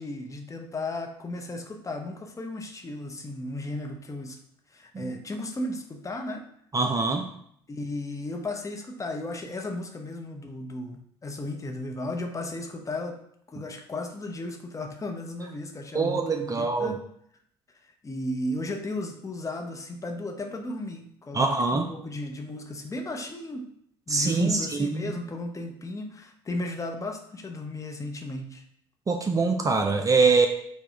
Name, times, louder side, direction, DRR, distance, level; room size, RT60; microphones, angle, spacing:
voice 1, 0.0-4.4 4.7-6.4 7.7-13.2 13.5-17.0 18.0-23.7 24.1-28.6, left 2 dB, 25° left, 3 dB, 0.8 m, -35 dB
voice 2, 6.7-7.3 15.9-17.0 21.3-21.9 24.1-25.1 29.1-30.5, right 4 dB, 25° right, 5 dB, 0.5 m, -24 dB
4.8 x 2.3 x 4.9 m, 0.68 s
figure-of-eight pair, 55°, 14 cm